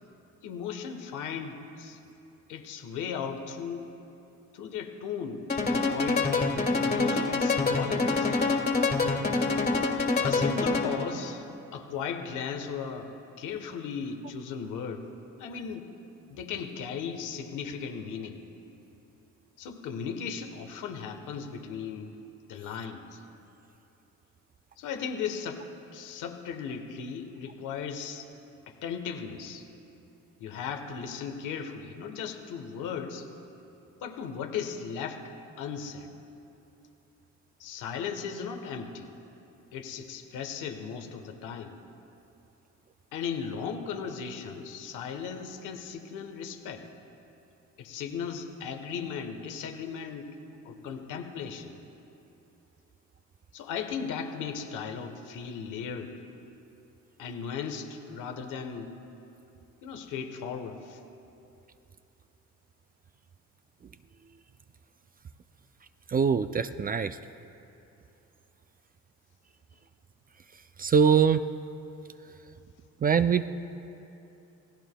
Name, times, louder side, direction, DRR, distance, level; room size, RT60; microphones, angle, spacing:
voice 1, 0.4-2.0 2.5-3.9 4.5-8.6 10.2-15.1 15.4-15.9 16.3-18.4 19.6-22.1 22.5-23.2 24.8-25.6 25.9-28.2 28.7-29.7 30.4-33.3 34.0-35.3 35.6-36.1 37.6-39.1 39.7-41.8 43.1-46.9 47.8-50.3 50.6-51.8 53.5-56.1 57.2-58.9 59.8-61.0, left 6 dB, 90° left, 6 dB, 1.2 m, -36 dB
sound 1, 5.5-11.1, left 3 dB, 30° left, 1.8 m, -26 dB
voice 2, 66.1-67.2 70.8-71.4 73.0-73.5, right 7 dB, 30° right, 11 dB, 0.4 m, -23 dB
27.0 x 16.5 x 2.3 m, 2.8 s
cardioid pair, 90°, 30 cm